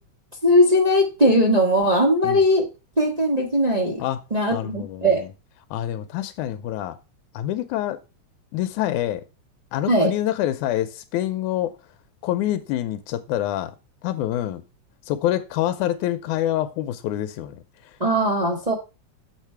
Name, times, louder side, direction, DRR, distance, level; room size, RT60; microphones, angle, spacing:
voice 1, 0.4-2.7 3.0-4.0 4.3-5.2 9.9-10.1 18.0-18.7, equal, 30° right, 0.7 m, -19 dB
voice 2, 4.5-5.3 5.7-7.0 7.3-8.0 8.5-9.2 9.7-11.8 12.2-13.7 14.0-14.6 15.1-17.9, left 13 dB, 85° left, 2.1 m, -26 dB
7.4 x 5.2 x 4.4 m
omnidirectional pair, 3.5 m